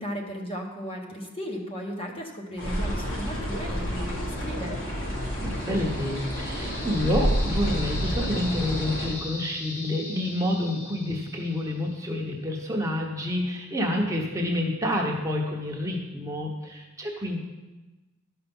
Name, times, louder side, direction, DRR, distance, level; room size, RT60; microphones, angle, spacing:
voice 1, 0.0-4.8, equal, 25° left, 0 dB, 1.3 m, -35 dB
sound 1, 2.6-9.1, equal, 65° left, 3.3 m, -29 dB
sound 2, 5.1-12.0, left 2 dB, 90° left, 1.9 m, -40 dB
voice 2, 5.4-17.4, left 1 dB, 15° right, -1 dB, 1.0 m, -28 dB
12.0 x 5.8 x 5.4 m, 1.1 s
head